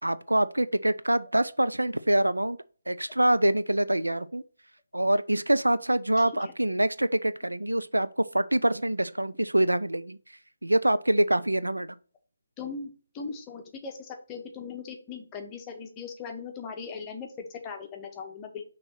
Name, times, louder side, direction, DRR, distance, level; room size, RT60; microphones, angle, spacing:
voice 1, 0.0-2.6 2.9-4.4 4.9-10.2 10.6-12.0, right 1 dB, 75° right, 0.4 m, -25 dB
voice 2, 12.6-18.6, left 5 dB, 15° left, 0.8 m, -39 dB
6.2 x 3.1 x 5.5 m
figure-of-eight pair, 145°, 0 cm